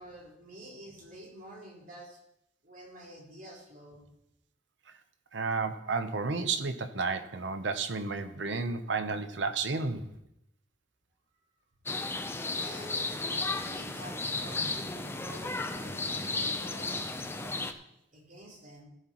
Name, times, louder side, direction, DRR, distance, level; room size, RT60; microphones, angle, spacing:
voice 1, 0.0-2.2 2.6-4.0 12.5-17.0 17.2-17.8 18.1-18.8, right 1 dB, 50° right, -3 dB, 4.7 m, -49 dB
voice 2, 5.3-10.1, right 4 dB, 65° right, 10 dB, 0.8 m, -32 dB
sound 1, 11.9-17.7, left 3 dB, 15° left, 0.6 m, -34 dB
15.5 x 11.0 x 3.1 m, 0.82 s
head